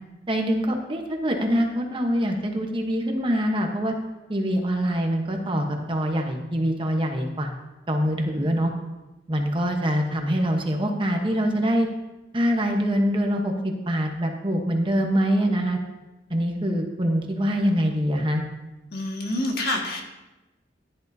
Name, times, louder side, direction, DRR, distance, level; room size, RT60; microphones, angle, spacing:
voice 1, 0.3-3.9 4.3-7.5 7.9-8.7 9.3-11.9 12.3-15.8 16.3-18.4, equal, 25° right, 3 dB, 1.0 m, -24 dB
voice 2, 18.9-20.0, left 1 dB, 55° left, 1 dB, 1.8 m, -27 dB
14.5 x 11.0 x 2.7 m, 1.1 s
head